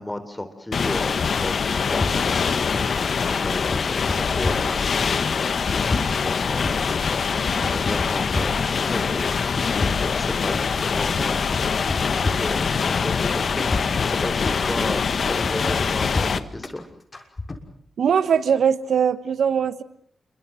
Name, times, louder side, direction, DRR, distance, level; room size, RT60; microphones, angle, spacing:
voice 1, 0.0-5.3 6.0-6.8 7.9-9.4 9.8-11.4 12.4-16.8, left 1 dB, 15° left, 10 dB, 4.1 m, -33 dB
sound 1, 0.7-16.4, left 5 dB, 65° left, 1.5 m, -24 dB
sound 2, 2.0-3.2 3.5-5.1 5.4-7.1 7.4-9.0 9.3-11.0 11.3-12.9 13.2-14.9 15.2-16.8 17.1-17.6, left 2 dB, 35° left, 6.2 m, -30 dB
voice 2, 18.0-19.8, right 7 dB, 75° right, 14 dB, 1.3 m, -20 dB
28.0 x 23.5 x 7.8 m, 0.63 s
supercardioid pair, 50°, 0 cm